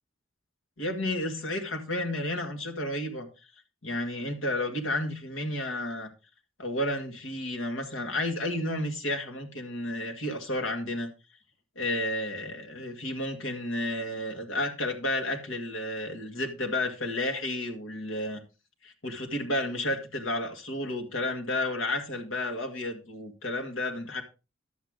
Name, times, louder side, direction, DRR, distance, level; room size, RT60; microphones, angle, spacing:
voice 1, 0.8-3.3 3.8-6.1 6.6-11.1 11.8-18.4 18.8-24.2, left 1 dB, 75° left, 2.0 m, -31 dB
11.0 x 8.0 x 3.7 m
head